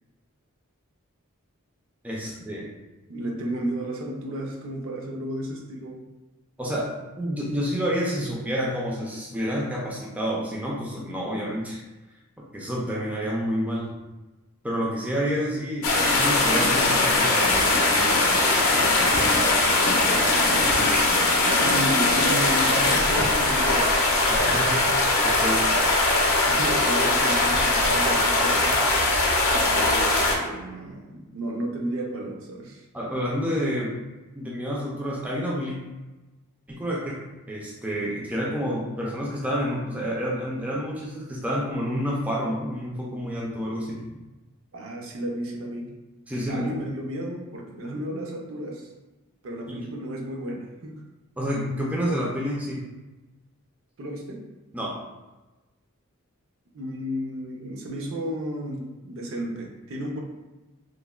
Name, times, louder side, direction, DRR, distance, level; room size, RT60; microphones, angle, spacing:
voice 1, 2.0-2.7 6.6-6.9 7.2-11.8 12.5-13.9 14.6-18.2 24.3-24.9 25.2-25.7 32.9-34.0 34.3-35.8 36.7-37.2 37.5-44.0 46.3-46.7 49.7-49.9 51.4-52.8 54.7-55.0, equal, 5° right, -4 dB, 0.3 m, -29 dB
voice 2, 3.1-6.0 19.9-20.9 21.5-23.9 26.5-28.9 29.6-32.9 44.7-45.9 46.5-48.9 49.4-51.0 54.0-54.4 56.7-60.2, right 1 dB, 65° right, 0 dB, 0.5 m, -33 dB
sound 1, 15.8-30.4, left 2 dB, 70° left, 0.5 m, -21 dB
3.1 x 2.1 x 2.2 m, 1.1 s
head